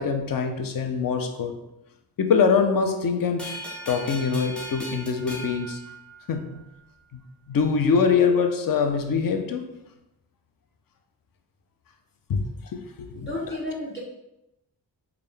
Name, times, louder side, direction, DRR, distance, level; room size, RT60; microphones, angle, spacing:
voice 1, 0.0-1.6 2.2-3.6 3.9-5.8 6.3-6.6 7.1-7.2 7.5-9.7 12.3-12.4 12.7-13.3, left 5 dB, 55° left, 6 dB, 0.6 m, -23 dB
sound 1, 3.4-6.6, equal, ahead, 0.7 m, -38 dB
voice 2, 13.2-14.0, left 1 dB, 25° left, -4 dB, 1.0 m, -31 dB
3.6 x 2.3 x 3.3 m, 0.90 s
cardioid pair, 60°, 42 cm